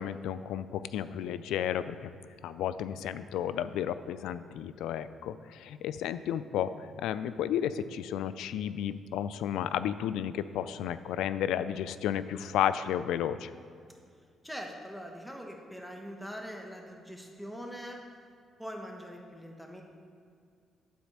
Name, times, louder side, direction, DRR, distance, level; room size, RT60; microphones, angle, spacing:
voice 1, 0.0-2.1 2.4-6.7 7.0-13.5, left 10 dB, 85° left, 13 dB, 0.3 m, -32 dB
voice 2, 14.4-18.0 18.6-19.8, equal, 5° left, 1 dB, 1.3 m, -42 dB
9.5 x 4.1 x 7.3 m, 2.3 s
cardioid pair, 90°, 0 cm